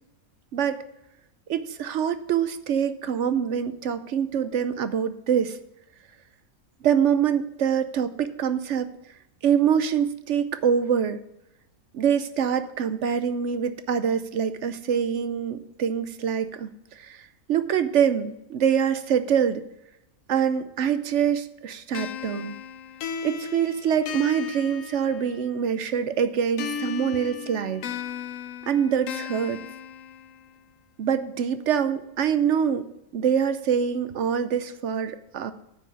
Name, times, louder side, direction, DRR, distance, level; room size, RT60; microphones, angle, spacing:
voice 1, 0.5-0.8 1.5-5.6 6.8-8.9 9.4-11.2 11.9-19.6 20.3-22.6 23.2-27.8 28.7-29.6 31.0-32.9 33.1-35.5, right 8 dB, 65° right, 12 dB, 0.9 m, -25 dB
sound 1, 21.9-25.6 26.6-30.6, left 7 dB, 70° left, 1.0 m, -36 dB
9.4 x 5.9 x 7.1 m, 0.86 s
omnidirectional pair, 1.5 m